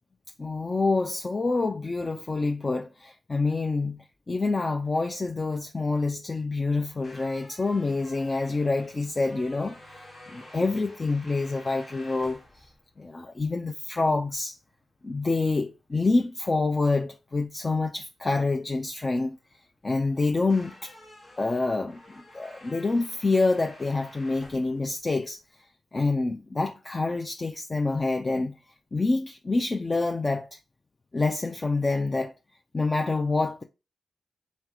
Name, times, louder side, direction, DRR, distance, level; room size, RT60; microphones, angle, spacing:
voice 1, 0.4-12.7 13.0-14.6 15.0-19.4 19.8-20.9 21.4-25.4 25.9-28.6 28.9-30.6 31.1-32.3 32.7-33.6, left 3 dB, 35° left, 0.4 m, -27 dB
sound 1, 6.8-25.7, left 1 dB, 70° left, 1.6 m, -51 dB
3.3 x 3.2 x 3.6 m
cardioid pair, 55°, 0 cm